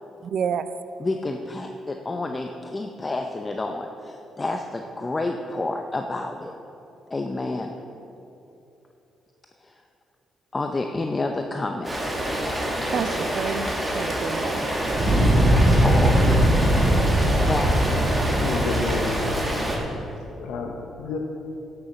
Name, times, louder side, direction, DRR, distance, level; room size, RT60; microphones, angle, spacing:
voice 1, 0.2-0.7 12.9-14.6, right 7 dB, 60° right, 12 dB, 0.5 m, -29 dB
voice 2, 1.0-6.5 7.1-7.8 9.6-9.8 10.5-12.1 15.6-16.5 17.5-18.0, left 2 dB, 25° left, 4 dB, 0.6 m, -29 dB
Rain, 11.8-19.8, right 1 dB, 10° right, 2.3 m, -27 dB
Fire, 14.8-20.0, right 1 dB, 30° right, 2.8 m, -21 dB
voice 3, 18.4-19.8 20.4-21.2, left 4 dB, 85° left, 2 dB, 0.9 m, -31 dB
11.0 x 7.0 x 6.6 m, 2.9 s
cardioid pair, 90°, 0 cm